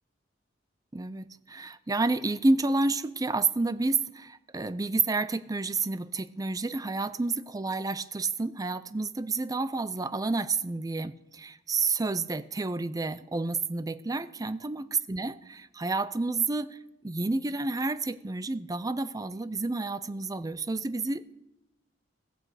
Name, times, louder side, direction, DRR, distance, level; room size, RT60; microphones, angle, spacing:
voice 1, 0.9-16.8 17.0-21.4, right 3 dB, 20° right, 0.5 m, -30 dB
16.0 x 15.0 x 4.9 m
head